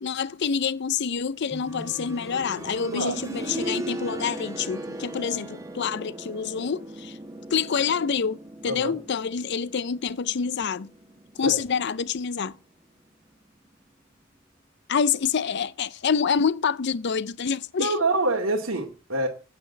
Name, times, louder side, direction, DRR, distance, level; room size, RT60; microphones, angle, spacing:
voice 1, 0.0-7.2 7.5-8.4 8.6-10.9 11.4-12.6 14.9-17.9, left 6 dB, 55° left, 0.5 m, -27 dB
sound 1, 1.5-12.3 13.6-13.7, right 1 dB, 15° right, 1.4 m, -38 dB
voice 2, 17.8-19.3, right 2 dB, 80° right, 2.4 m, -26 dB
9.6 x 8.6 x 8.7 m
head